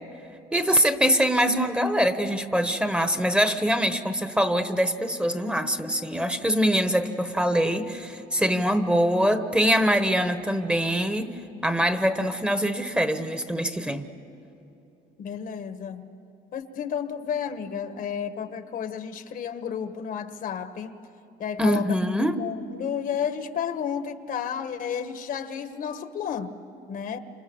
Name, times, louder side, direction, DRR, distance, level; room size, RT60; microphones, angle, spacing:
voice 1, 0.5-11.4 11.6-14.1 21.6-22.4, equal, 5° right, 9 dB, 1.2 m, -23 dB
voice 2, 15.2-16.1 16.5-20.9 21.4-22.0 22.3-26.5 26.9-27.2, left 8 dB, 55° left, 10 dB, 1.4 m, -32 dB
29.5 x 27.5 x 7.1 m, 2.9 s
cardioid pair, 110°, 17 cm